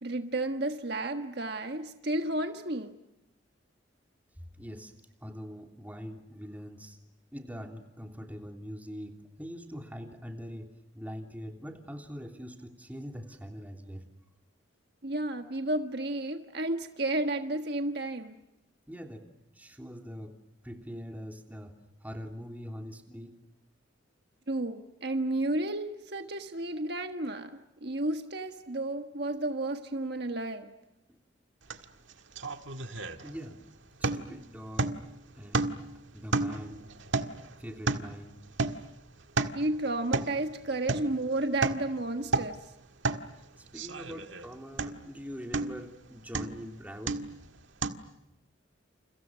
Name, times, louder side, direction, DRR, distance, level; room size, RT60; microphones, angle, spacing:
voice 1, 0.0-2.9 15.0-18.4 24.5-30.7 39.5-42.7, right 2 dB, 55° right, 6 dB, 1.5 m, -32 dB
voice 2, 4.4-4.9 5.2-7.0 7.3-14.1 18.9-19.3 19.5-20.4 20.6-21.7 22.0-23.3 31.1-31.2 33.2-33.6 34.0-35.0 35.3-36.9 37.6-38.4 43.6-47.2, equal, 10° right, 3 dB, 3.2 m, -43 dB
sound 1, 31.7-31.8 32.1-33.6 34.0-34.4 34.8-35.1 35.5-36.0 36.3-38.2 38.6-38.9 39.2-39.6 40.1-40.4 40.9-41.1 41.4-41.9 42.2-42.6 43.0-43.3 43.7-44.5 44.8-45.1 45.5-45.9 46.3-46.6 47.1-47.4 47.8-47.9, right 3 dB, 75° right, 1.7 m, -31 dB
30.0 x 29.5 x 6.4 m, 0.90 s
head